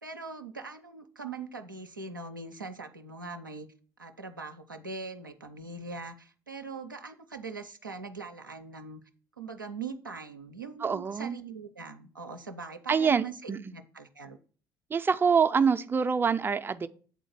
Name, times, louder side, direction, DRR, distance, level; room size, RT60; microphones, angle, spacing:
voice 1, 0.0-3.7 4.0-9.0 9.4-14.4, right 4 dB, 90° right, 0.5 m, -41 dB
voice 2, 10.8-11.4 12.9-13.6 14.9-16.9, right 6 dB, 20° right, 0.4 m, -25 dB
8.2 x 3.8 x 6.0 m
figure-of-eight pair, 50°, 10 cm